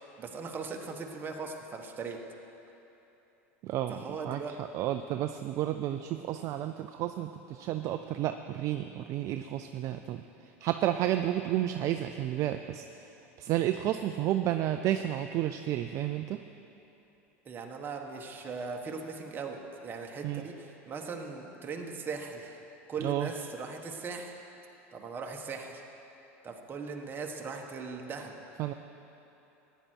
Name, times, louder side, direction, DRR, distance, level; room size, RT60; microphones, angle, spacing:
voice 1, 0.2-2.2 3.9-4.5 17.4-22.6 22.9-24.3 24.9-25.8 26.4-28.3, right 4 dB, 30° right, 2 dB, 1.4 m, -39 dB
voice 2, 3.6-4.0 4.2-16.4 20.2-20.4 23.0-23.3 28.6-28.7, right 12 dB, 45° right, 8 dB, 0.4 m, -31 dB
15.0 x 10.0 x 4.6 m, 3.0 s
hypercardioid pair, 100°, 7 cm